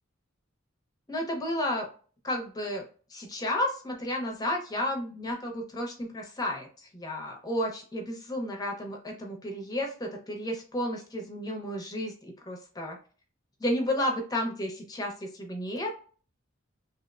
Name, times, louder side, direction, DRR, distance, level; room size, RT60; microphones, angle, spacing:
voice 1, 1.1-1.9 2.2-2.8 3.1-12.1 12.5-13.0 13.6-16.0, left 1 dB, 20° left, 1 dB, 0.6 m, -32 dB
2.8 x 2.0 x 2.3 m, 0.40 s
head